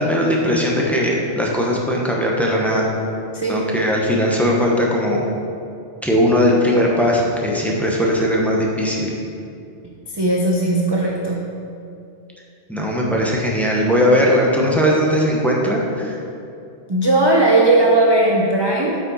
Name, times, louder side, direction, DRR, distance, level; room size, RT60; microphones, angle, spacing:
voice 1, 0.0-2.9 3.5-5.2 6.0-9.1 12.7-16.2, equal, ahead, -3 dB, 1.0 m, -18 dB
voice 2, 10.1-11.4 16.9-19.0, right 2 dB, 25° right, -2 dB, 0.6 m, -17 dB
8.6 x 6.0 x 4.2 m, 2.5 s
omnidirectional pair, 1.2 m